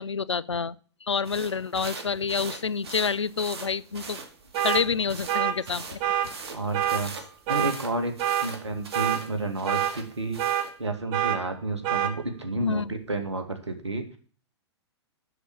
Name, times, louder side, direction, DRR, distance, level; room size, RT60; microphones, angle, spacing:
voice 1, 0.0-4.2 4.6-6.0 12.6-12.9, left 5 dB, 80° left, 20 dB, 0.5 m, -28 dB
sound 1, 1.2-10.8, right 4 dB, 65° right, 2.2 m, -42 dB
sound 2, 4.5-4.8 5.3-5.5 6.0-6.3 6.7-7.0 7.5-7.7 8.2-8.5 8.9-9.2 9.7-9.9 10.4-10.7 11.1-11.4 11.8-12.1, right 11 dB, 35° right, 1.6 m, -25 dB
voice 2, 6.5-7.1 7.5-10.4 10.8-14.2, right 2 dB, 80° right, 6 dB, 2.2 m, -31 dB
8.0 x 7.6 x 8.7 m, 0.41 s
figure-of-eight pair, 105°, 15 cm